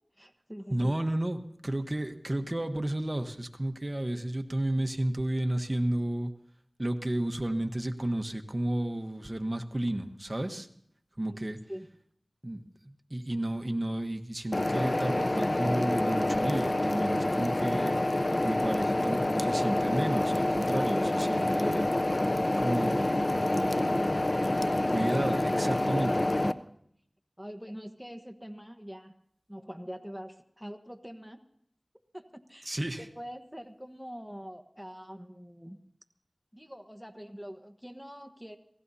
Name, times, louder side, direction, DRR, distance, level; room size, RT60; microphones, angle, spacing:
voice 1, 0.2-0.9 11.3-11.4 11.7-11.9 23.3-23.9 25.5-26.6 27.4-29.1 29.5-31.4 32.1-35.8 36.5-38.6, equal, ahead, 6 dB, 1.2 m, -44 dB
voice 2, 0.7-6.3 6.8-10.7 11.2-11.6 12.4-18.2 18.4-21.9 22.6-24.0 24.9-26.1 32.6-33.0, right 1 dB, 35° right, 6 dB, 1.2 m, -32 dB
sound 1, 14.5-26.5, left 1 dB, 50° left, 0.6 m, -27 dB
28.0 x 18.5 x 2.8 m, 0.69 s
wide cardioid pair, 45°, 0 cm